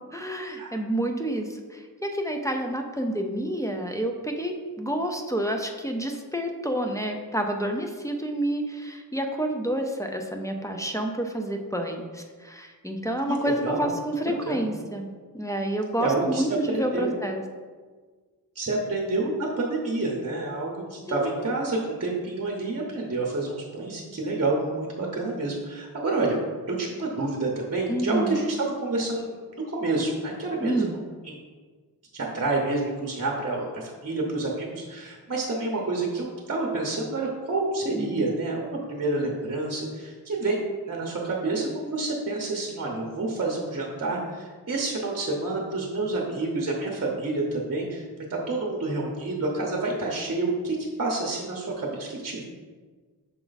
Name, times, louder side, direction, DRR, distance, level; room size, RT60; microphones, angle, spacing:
voice 1, 0.1-15.1 15.3-17.4 21.1-21.3 27.9-28.4 30.6-31.0 38.0-38.2, right 1 dB, 10° left, 3 dB, 0.5 m, -29 dB
voice 2, 13.3-13.9 14.3-14.6 16.0-17.1 18.5-26.4 26.7-29.4 29.7-30.9 31.2-31.4 32.1-40.6 40.9-48.0 48.3-52.4, right 2 dB, 40° right, -1 dB, 0.9 m, -28 dB
5.9 x 4.4 x 4.0 m, 1.5 s
wide cardioid pair, 110°, 39 cm